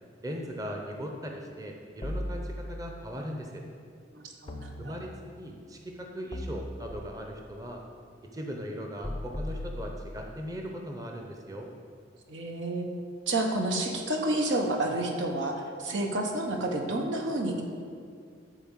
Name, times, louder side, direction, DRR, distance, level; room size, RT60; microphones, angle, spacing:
voice 1, 0.2-3.6 4.8-5.1 5.4-7.8 8.3-11.7, equal, 20° right, 1 dB, 0.8 m, -38 dB
sound 1, 2.0-3.1 4.5-5.4 6.3-7.4 9.0-10.5, left 1 dB, 30° left, 0.6 m, -38 dB
voice 2, 4.1-5.0 12.3-12.9 13.3-17.6, right 1 dB, 75° right, 2 dB, 1.2 m, -30 dB
11.5 x 4.3 x 7.3 m, 2.2 s
head